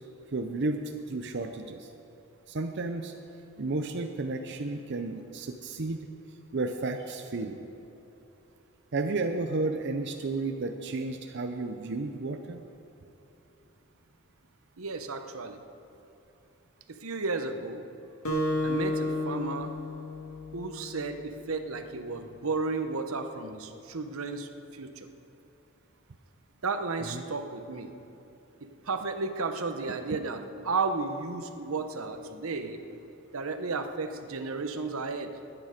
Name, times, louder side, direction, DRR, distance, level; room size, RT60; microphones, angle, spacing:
voice 1, 0.3-1.9 2.5-3.1 3.6-6.1 6.5-7.6 8.9-12.6 27.0-27.2 30.1-30.2, right 3 dB, 55° right, 5 dB, 0.6 m, -32 dB
voice 2, 14.8-15.6 16.9-17.8 18.6-19.7 20.5-25.1 26.6-27.9 28.6-32.8 33.3-35.3, right 3 dB, 85° right, 7 dB, 0.9 m, -33 dB
Acoustic guitar, 18.2-21.0, left 1 dB, 90° left, 2.1 m, -31 dB
20.0 x 9.0 x 5.1 m, 2.9 s
head